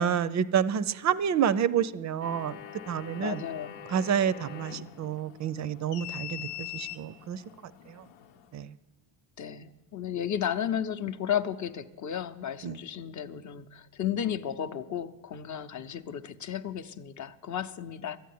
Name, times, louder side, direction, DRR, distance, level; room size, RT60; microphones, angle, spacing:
voice 1, 0.0-2.6 2.9-3.4 3.9-7.4 7.9-8.0 8.5-8.7 12.6-12.8, right 8 dB, 40° right, 17 dB, 0.5 m, -28 dB
sound 1, 2.2-8.6, left 11 dB, 85° left, 0.9 m, -43 dB
voice 2, 3.2-3.8 9.4-18.2, left 9 dB, 40° left, 8 dB, 0.7 m, -33 dB
13.0 x 8.3 x 9.3 m, 1.2 s
cardioid pair, 120°, 46 cm